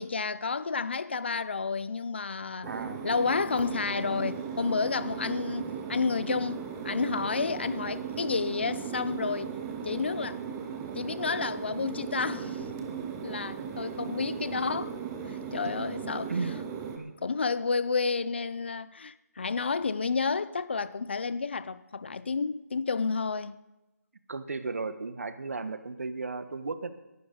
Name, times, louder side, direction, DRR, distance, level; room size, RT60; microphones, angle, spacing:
voice 1, 0.0-2.7 3.0-9.5 9.8-10.4 10.9-12.8 13.2-14.9 15.3-16.3 17.2-23.6, left 4 dB, 40° left, 0.6 m, -30 dB
sound 1, 2.6-17.0, right 7 dB, 5° right, 0.5 m, -37 dB
voice 2, 2.7-3.0 16.3-16.5 17.0-17.1 24.3-26.9, right 4 dB, 55° right, 1.3 m, -34 dB
19.0 x 11.5 x 3.9 m
figure-of-eight pair, 170°, 9 cm